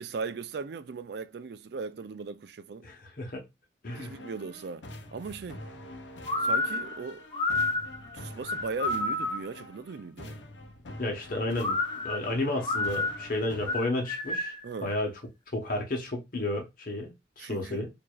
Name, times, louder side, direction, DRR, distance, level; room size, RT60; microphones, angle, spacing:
voice 1, 0.0-2.9 4.0-5.6 6.4-7.2 8.1-10.4 14.6-14.9 17.4-17.9, right 4 dB, 60° right, 0.4 m, -38 dB
voice 2, 2.8-3.4 3.8-4.1 11.0-11.8 12.0-14.5 14.8-15.1 15.5-17.9, left 1 dB, 50° left, 1.0 m, -32 dB
sound 1, 3.8-13.8, left 1 dB, 70° left, 0.8 m, -46 dB
sound 2, 6.3-9.6 11.6-14.7, left 2 dB, 25° left, 0.6 m, -30 dB
4.7 x 2.7 x 2.3 m
head